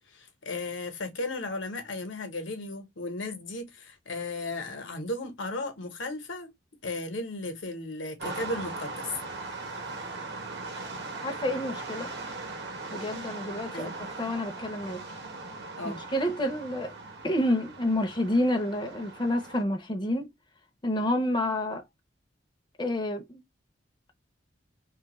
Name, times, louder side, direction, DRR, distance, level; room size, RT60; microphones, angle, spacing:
voice 1, 0.0-6.5 6.8-9.1 13.7-13.9 15.8-16.0, left 2 dB, 75° left, 0.9 m, -35 dB
sound 1, 8.2-19.6, right 3 dB, 60° right, 0.9 m, -39 dB
voice 2, 11.2-12.1 12.9-13.9 14.2-15.0 15.8-16.9 17.2-20.3 20.8-21.8 22.8-23.4, left 1 dB, 25° left, 0.6 m, -29 dB
3.0 x 2.3 x 2.9 m
head